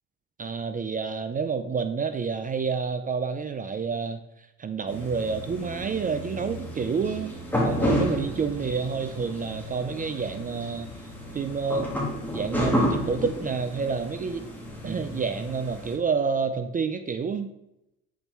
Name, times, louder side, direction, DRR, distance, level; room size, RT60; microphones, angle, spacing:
voice 1, 0.4-4.2 4.6-7.3 7.6-10.9 11.3-11.9 12.3-14.4 14.8-17.5, right 5 dB, 25° right, 9 dB, 0.4 m, -29 dB
sound 1, 4.9-16.0, equal, 5° left, 1.8 m, -31 dB
7.2 x 4.1 x 4.6 m, 0.87 s
cardioid pair, 110°, 32 cm